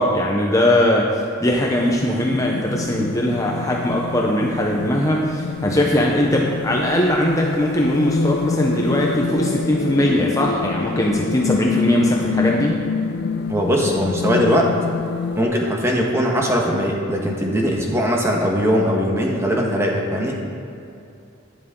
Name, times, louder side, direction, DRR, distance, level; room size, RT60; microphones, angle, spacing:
voice 1, 0.0-12.8, left 1 dB, 15° left, -1 dB, 0.8 m, -20 dB
sound 1, 1.7-15.4, left 4 dB, 55° left, 0.3 m, -26 dB
voice 2, 13.5-14.7 15.3-20.4, equal, 15° right, -1 dB, 1.3 m, -20 dB
11.5 x 10.5 x 3.8 m, 2.6 s
head